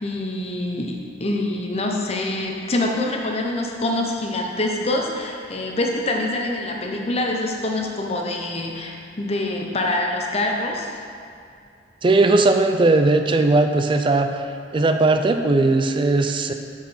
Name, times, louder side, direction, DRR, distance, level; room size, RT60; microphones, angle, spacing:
voice 1, 0.0-11.0, left 1 dB, 35° left, 1 dB, 0.8 m, -25 dB
voice 2, 12.0-14.3 14.7-16.5, right 2 dB, 30° right, 6 dB, 0.4 m, -18 dB
9.2 x 4.9 x 4.3 m, 2.5 s
head